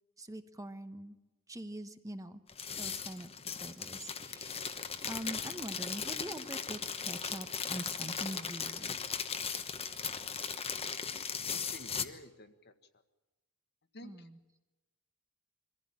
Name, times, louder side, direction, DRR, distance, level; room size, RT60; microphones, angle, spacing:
voice 1, 0.2-1.2 1.5-2.4 2.8-3.3 3.6-9.0 14.0-14.4, right 1 dB, 15° right, 8 dB, 1.0 m, -44 dB
sound 1, 2.5-12.0, left 6 dB, 25° left, 1.1 m, -38 dB
voice 2, 11.5-12.7 13.9-14.3, left 1 dB, 50° left, 8 dB, 1.6 m, -51 dB
24.0 x 15.5 x 8.7 m, 1.1 s
head